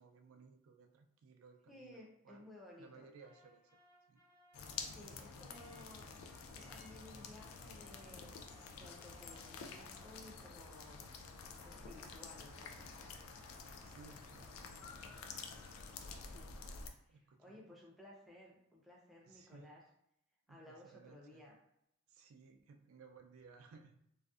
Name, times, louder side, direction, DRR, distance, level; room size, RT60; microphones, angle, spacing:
voice 1, 0.0-2.4 2.8-3.8 4.1-4.2 13.8-15.0 16.8-17.7 19.3-19.7 20.5-21.4 22.1-24.0, right 5 dB, 85° right, 5 dB, 0.3 m, -60 dB
voice 2, 1.7-3.1 4.8-6.0 6.6-8.4 8.7-11.1 11.6-12.9 16.2-16.5 17.1-19.8 20.5-21.5, left 1 dB, ahead, -4 dB, 0.4 m, -57 dB
sound 1, 3.2-10.7 11.1-15.2, right 1 dB, 60° left, 1.0 m, -69 dB
sound 2, 4.5-16.9, left 5 dB, 85° left, 0.3 m, -50 dB
2.6 x 2.1 x 2.3 m, 0.79 s
head